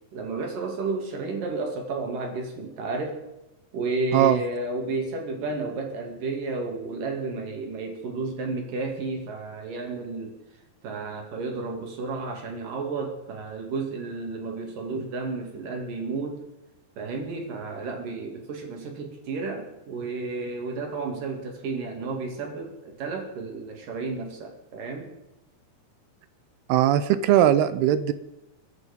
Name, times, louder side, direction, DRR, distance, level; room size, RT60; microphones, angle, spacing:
voice 1, 0.1-3.2 3.7-10.4 10.8-16.4 17.0-25.1, right 3 dB, 60° right, 3 dB, 4.0 m, -32 dB
voice 2, 26.7-28.1, right 11 dB, 85° right, 13 dB, 2.9 m, -19 dB
24.0 x 9.6 x 5.3 m, 0.93 s
omnidirectional pair, 4.5 m